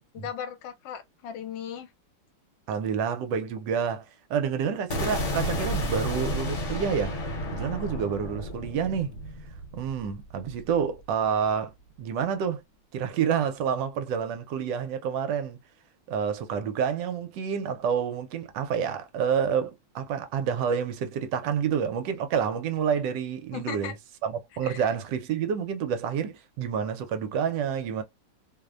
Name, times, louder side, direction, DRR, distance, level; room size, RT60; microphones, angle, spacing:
voice 1, 0.1-1.9 23.5-23.9 24.6-24.8, left 9 dB, 80° left, 1.3 m, -37 dB
voice 2, 2.7-7.2 7.5-9.1 9.7-11.7 12.0-12.6 12.9-15.6 16.1-24.0 24.2-28.0, right 7 dB, 75° right, 1.2 m, -28 dB
sound 1, 4.9-10.9, equal, 50° left, 1.1 m, -32 dB
3.0 x 2.0 x 2.3 m
omnidirectional pair, 2.0 m